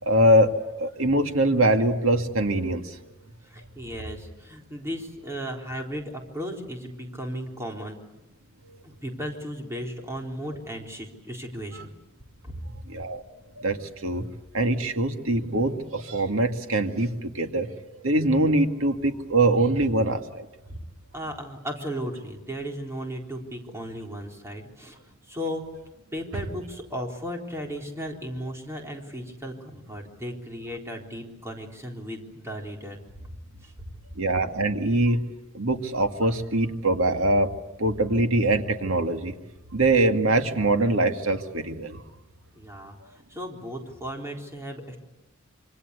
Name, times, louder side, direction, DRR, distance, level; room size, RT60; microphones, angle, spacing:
voice 1, 0.0-3.0 12.9-13.2 13.6-14.3 14.5-17.7 18.0-20.5 34.2-35.2 35.5-39.3 39.7-42.0, right 1 dB, 80° right, 6 dB, 2.1 m, -23 dB
voice 2, 3.4-8.0 8.8-11.9 12.4-12.6 20.7-20.8 21.1-25.0 25.3-25.6 26.1-33.0 33.6-33.7 42.6-43.0 43.3-45.0, equal, 15° right, 1 dB, 4.0 m, -35 dB
26.5 x 25.0 x 8.4 m, 0.97 s
head